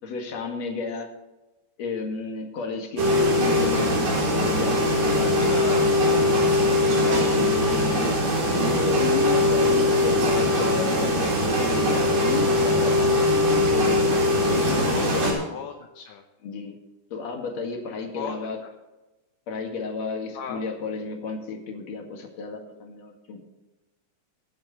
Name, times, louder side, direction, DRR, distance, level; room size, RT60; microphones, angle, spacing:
voice 1, 0.0-1.1 1.8-6.5 6.9-8.1 8.5-13.1 13.7-14.1 14.5-15.3 16.4-16.7 17.1-18.6 19.5-23.4, left 4 dB, 55° left, 1 dB, 3.2 m, -32 dB
sound 1, 3.0-15.3, left 1 dB, 75° right, 5.5 m, -21 dB
voice 2, 5.4-5.9 14.6-15.2 15.5-16.2 18.1-18.3 20.3-20.6, left 7 dB, 75° left, 2 dB, 2.5 m, -35 dB
24.0 x 8.1 x 3.2 m, 1.1 s
omnidirectional pair, 3.8 m